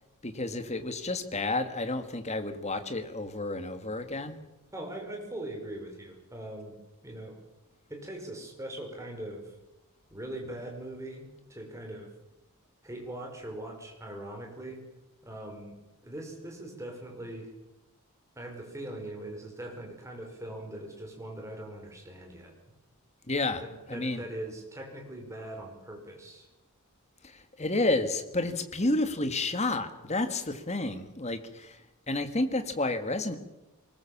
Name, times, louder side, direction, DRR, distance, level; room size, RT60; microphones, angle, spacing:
voice 1, 0.2-4.4 23.3-23.6 23.9-24.2 27.2-31.8 32.1-33.3, left 2 dB, 30° left, 8 dB, 1.9 m, -30 dB
voice 2, 4.7-6.8 7.0-7.4 7.9-9.5 10.1-12.1 12.8-14.8 15.2-15.7 16.0-17.5 18.3-22.5 23.6-26.5, right 1 dB, 15° right, 1 dB, 5.2 m, -41 dB
23.0 x 20.5 x 7.4 m, 0.97 s
head